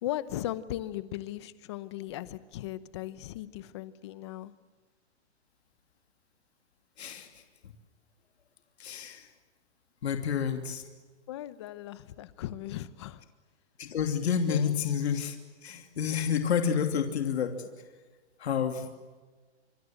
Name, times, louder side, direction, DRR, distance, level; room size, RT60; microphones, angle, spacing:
voice 1, 0.0-4.5 11.3-13.2 14.5-14.8, left 14 dB, 25° left, 16 dB, 0.9 m, -37 dB
voice 2, 7.0-7.3 8.8-9.3 10.0-10.8 13.8-15.4 15.6-17.6 18.4-18.9, left 7 dB, 70° left, 6 dB, 2.9 m, -29 dB
26.0 x 25.0 x 7.8 m, 1.4 s
hypercardioid pair, 175°, 34 cm